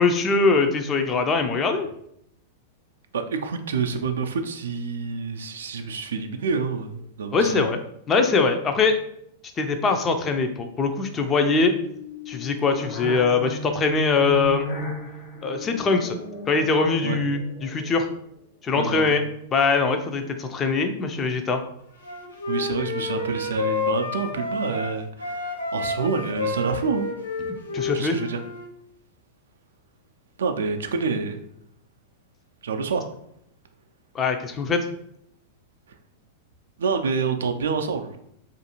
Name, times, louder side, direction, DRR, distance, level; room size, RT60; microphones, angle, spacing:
voice 1, 0.0-1.9 7.3-7.8 8.1-9.0 9.6-11.7 12.3-14.7 15.4-16.2 16.5-18.1 18.6-19.2 19.5-21.6 27.7-28.2 34.1-34.8, left 4 dB, 25° left, 6 dB, 0.4 m, -22 dB
voice 2, 3.1-7.7 17.0-17.2 18.7-19.2 22.5-27.1 27.9-28.4 30.4-31.4 32.6-33.1 36.8-38.2, right 5 dB, 75° right, 6 dB, 0.3 m, -27 dB
sound 1, 11.8-18.2, left 2 dB, 50° left, 0.7 m, -36 dB
Wind instrument woodwind instrument, 22.0-24.9 25.2-28.7, left 3 dB, 90° left, 0.5 m, -29 dB
2.5 x 2.3 x 2.9 m, 0.73 s
hypercardioid pair, 100°, 0 cm